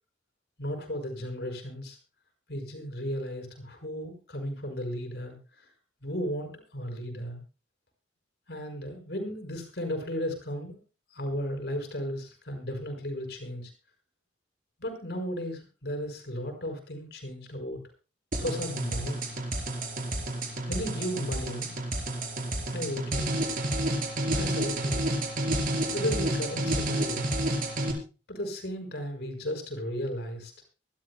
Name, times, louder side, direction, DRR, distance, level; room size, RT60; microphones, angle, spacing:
voice 1, 0.6-2.0 2.5-5.7 6.0-7.4 8.5-10.8 11.1-13.7 14.8-17.8 18.4-19.2 20.7-21.7 22.7-23.3 24.4-25.0 25.9-27.3 28.3-30.5, equal, 65° left, 5 dB, 5.4 m, -35 dB
sound 1, 18.3-27.9, right 1 dB, 50° right, 3.9 m, -30 dB
24.5 x 13.0 x 2.2 m, 0.32 s
head